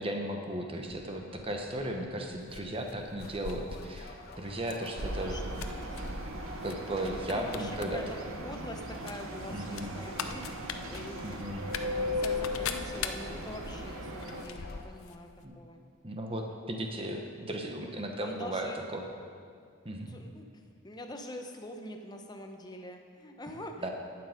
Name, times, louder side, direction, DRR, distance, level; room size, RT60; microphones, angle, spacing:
voice 1, 0.0-5.3 6.6-8.0 9.5-9.9 11.2-11.7 15.4-15.5 16.0-19.1 19.8-20.2 23.8-23.9, right 1 dB, 25° right, 3 dB, 1.0 m, -36 dB
sound 1, 0.8-14.8, left 2 dB, 45° left, 1.0 m, -50 dB
sound 2, 2.5-4.1 4.6-4.9 5.2-6.0 6.6-6.8 7.0-7.9 8.2-8.3 9.0-15.2 15.4-15.5, left 7 dB, 85° left, 0.6 m, -41 dB
sound 3, 5.0-14.4, left 1 dB, 85° right, 1.1 m, -38 dB
voice 2, 5.1-5.7 7.3-8.0 8.4-15.3 15.6-15.8 18.2-18.8 20.1-20.5 20.8-23.9, left 1 dB, 20° left, 4 dB, 0.7 m, -44 dB
11.0 x 8.8 x 5.2 m, 2.2 s
head